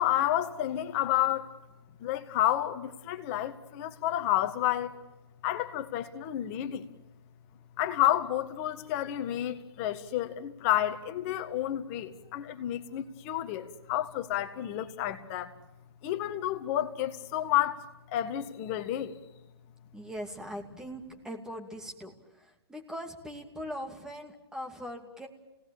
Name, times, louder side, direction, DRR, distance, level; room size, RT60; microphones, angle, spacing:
voice 1, 0.0-1.5 2.0-5.0 5.4-6.9 7.8-15.5 16.0-17.8 18.1-19.1, left 12 dB, 30° left, 9 dB, 1.7 m, -30 dB
voice 2, 19.9-25.3, equal, 5° right, 2 dB, 2.6 m, -41 dB
29.5 x 18.5 x 8.9 m, 1.1 s
hypercardioid pair, 150°, 14 cm